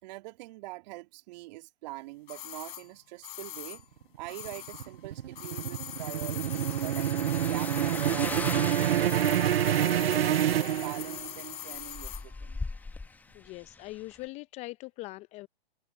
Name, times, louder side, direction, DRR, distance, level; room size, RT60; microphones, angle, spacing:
voice 1, 0.0-3.8 4.1-9.3 9.7-12.6, right 20 dB, 45° right, 2.8 m, -44 dB
sound 1, 2.3-5.0 5.3-12.3 12.6-12.7, left 13 dB, 60° left, 3.9 m, -42 dB
sound 2, 4.2-11.4, right 11 dB, 70° right, 0.6 m, -27 dB
sound 3, 5.9-14.2, left 3 dB, 5° left, 1.1 m, -41 dB
voice 2, 13.3-15.5, left 20 dB, 20° left, 0.6 m, -42 dB
hypercardioid pair, 125°, 31 cm